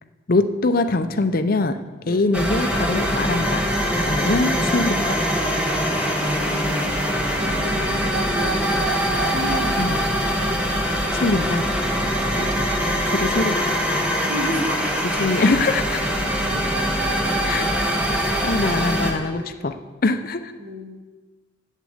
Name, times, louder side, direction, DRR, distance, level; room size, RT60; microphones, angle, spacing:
voice 1, 0.3-1.8 2.1-3.7 4.0-5.3 9.8-10.0 11.1-11.6 12.4-12.7 13.0-14.1 15.2-16.0 17.4-17.7 18.2-19.8 20.0-20.5, left 3 dB, 45° left, 9 dB, 0.6 m, -23 dB
sound 1, 2.3-19.1, equal, 5° right, 1.1 m, -23 dB
voice 2, 5.9-8.9 9.3-9.9 14.3-14.9 16.5-16.6 19.0-19.7 20.6-21.0, equal, 35° right, 1 dB, 1.6 m, -33 dB
8.3 x 7.5 x 7.9 m, 1.3 s
head